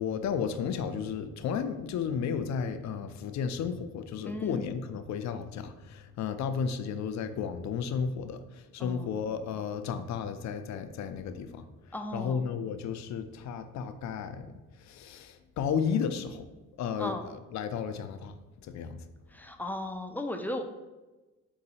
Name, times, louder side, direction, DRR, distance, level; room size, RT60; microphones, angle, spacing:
voice 1, 0.0-11.7 12.1-14.5 14.9-16.5 16.8-17.1 17.5-18.3 18.7-19.0, left 7 dB, 65° left, 9 dB, 0.5 m, -33 dB
voice 2, 4.2-4.7 8.8-9.2 11.9-12.5 17.0-17.3 19.3-20.6, left 1 dB, 5° left, 4 dB, 0.4 m, -36 dB
3.9 x 2.7 x 4.1 m, 1.1 s
cardioid pair, 90°, 30 cm